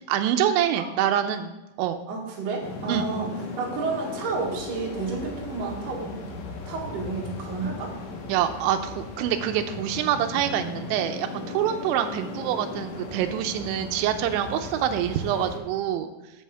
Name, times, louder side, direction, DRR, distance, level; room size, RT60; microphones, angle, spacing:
voice 1, 0.1-2.0 2.9-3.1 8.3-16.1, right 10 dB, 90° right, 7 dB, 3.0 m, -26 dB
voice 2, 0.8-1.1 2.1-3.3 3.6-6.1 6.7-7.9, right 4 dB, 55° right, -2 dB, 2.8 m, -31 dB
sound 1, 2.6-15.6, left 3 dB, 75° left, 2.0 m, -37 dB
7.6 x 5.6 x 7.5 m, 1.0 s
omnidirectional pair, 5.3 m